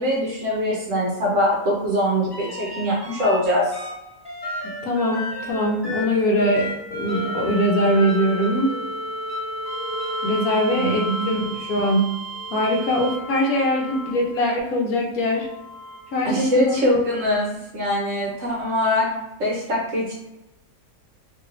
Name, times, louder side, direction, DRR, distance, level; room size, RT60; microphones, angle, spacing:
voice 1, 0.0-3.8 10.7-11.3 16.2-20.1, equal, 60° right, -3 dB, 0.9 m, -23 dB
sound 1, 2.3-3.4 3.7-14.5 15.3-16.9 18.6-18.7, equal, 35° left, 0.4 m, -32 dB
voice 2, 4.6-8.7 10.2-12.1 12.5-15.5 16.1-16.8, equal, 70° left, -1 dB, 1.0 m, -22 dB
3.0 x 2.9 x 2.4 m, 0.94 s
omnidirectional pair, 1.8 m